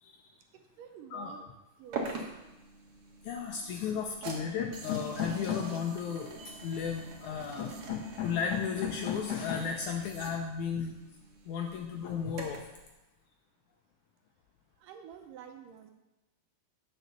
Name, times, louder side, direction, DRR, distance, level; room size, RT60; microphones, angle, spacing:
voice 1, 0.0-0.4 1.1-1.3 2.1-2.2 3.2-10.9 11.5-12.6, left 7 dB, 75° left, 3 dB, 1.8 m, -34 dB
voice 2, 0.5-1.5 1.8-2.3 14.8-15.9, right 7 dB, 75° right, 5 dB, 2.3 m, -49 dB
sound 1, 1.9-12.8, right 3 dB, 55° right, 1.9 m, -44 dB
9.2 x 5.4 x 6.8 m, 1.0 s
omnidirectional pair, 4.1 m